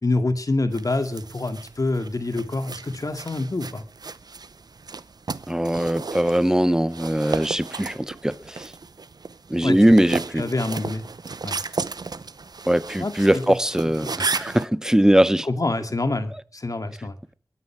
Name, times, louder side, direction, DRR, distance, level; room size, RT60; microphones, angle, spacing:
voice 1, 0.0-3.8 9.6-10.0 10.4-11.1 11.4-11.6 13.0-13.5 13.8-14.1 15.4-17.2, left 2 dB, 60° left, 2.2 m, -26 dB
sound 1, 0.7-14.7, right 4 dB, 85° right, 0.7 m, -34 dB
voice 2, 5.5-8.7 9.5-10.5 12.7-15.5, right 1 dB, 10° right, 0.8 m, -20 dB
22.5 x 9.8 x 6.0 m
wide cardioid pair, 55°, 7 cm